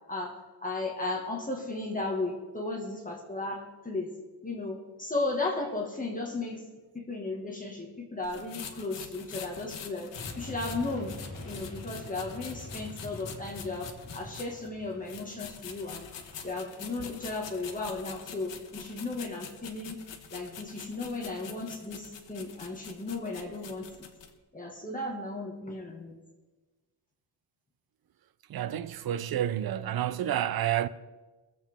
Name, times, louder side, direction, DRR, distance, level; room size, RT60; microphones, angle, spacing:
voice 1, 0.6-4.1 4.4-6.6 6.9-11.1 11.4-16.1 16.4-20.0 20.3-24.1 24.5-26.1, left 2 dB, 20° left, 1.9 m, -35 dB
sound 1, 8.2-14.7 15.1-24.3, left 7 dB, 85° left, 1.2 m, -45 dB
sound 2, 10.1-17.8, left 1 dB, 55° left, 4.5 m, -45 dB
voice 2, 28.5-30.9, right 11 dB, 55° right, 0.6 m, -29 dB
22.5 x 7.7 x 3.7 m
wide cardioid pair, 140°, 43 cm